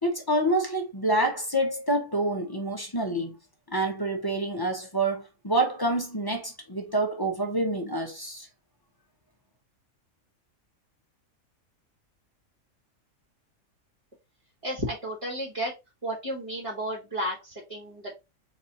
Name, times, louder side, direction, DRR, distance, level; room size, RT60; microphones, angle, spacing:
voice 1, 0.0-3.4 3.7-8.5, right 1 dB, 20° left, 0.8 m, -27 dB
voice 2, 14.6-15.7 16.0-18.1, equal, 25° right, 1.4 m, -32 dB
4.1 x 3.0 x 4.1 m
omnidirectional pair, 1.5 m